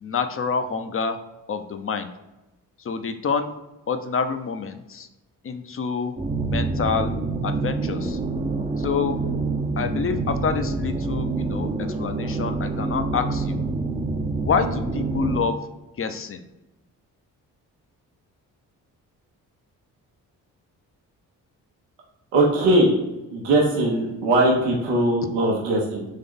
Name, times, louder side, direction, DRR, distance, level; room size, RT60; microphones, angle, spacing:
voice 1, 0.0-1.2 1.5-2.1 2.8-3.5 3.9-5.1 5.4-6.1 6.5-7.1 7.4-8.2 8.8-9.2 9.8-13.7 14.4-15.6 16.0-16.4, left 6 dB, 30° left, 8 dB, 0.6 m, -27 dB
sound 1, 6.2-15.4, right 3 dB, 15° right, 0.6 m, -27 dB
voice 2, 22.3-22.9 23.3-26.1, right 1 dB, 85° right, -2 dB, 0.9 m, -20 dB
3.7 x 3.3 x 3.7 m, 1.0 s
hypercardioid pair, 45°, 42 cm